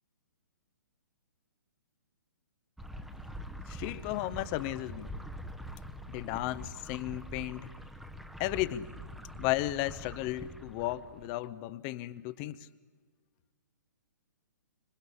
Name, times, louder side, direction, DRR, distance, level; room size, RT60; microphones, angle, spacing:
sound 1, 2.8-11.4, equal, ahead, 1.0 m, -44 dB
voice 1, 3.5-5.1 6.1-7.7 8.4-8.9 9.3-12.7, left 16 dB, 30° left, 0.9 m, -34 dB
26.5 x 24.0 x 8.5 m
figure-of-eight pair, 120°, 10 cm